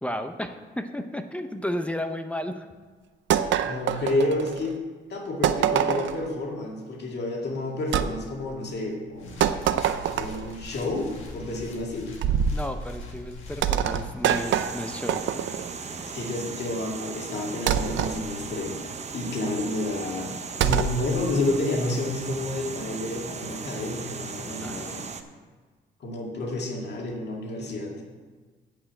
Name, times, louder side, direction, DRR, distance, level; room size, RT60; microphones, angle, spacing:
voice 1, 0.0-2.7 12.5-15.2 24.6-25.0, left 1 dB, 5° left, 7 dB, 0.7 m, -33 dB
sound 1, 3.3-4.7 5.4-6.3 7.9-8.1 9.4-10.5 12.2-12.6 13.6-15.7 17.7-18.2 20.6-21.0, right 9 dB, 70° right, 0.5 m, -25 dB
voice 2, 3.6-4.8 5.1-9.4 10.2-12.1 16.1-18.8 19.1-20.3 20.6-25.0 26.0-28.0, left 2 dB, 60° left, -1 dB, 2.1 m, -30 dB
sound 2, 9.1-14.3, left 3 dB, 85° left, 1.7 m, -42 dB
sound 3, 14.3-25.2, right 5 dB, 35° right, 0.8 m, -37 dB
8.8 x 5.6 x 7.7 m, 1.4 s
cardioid pair, 90°, 20 cm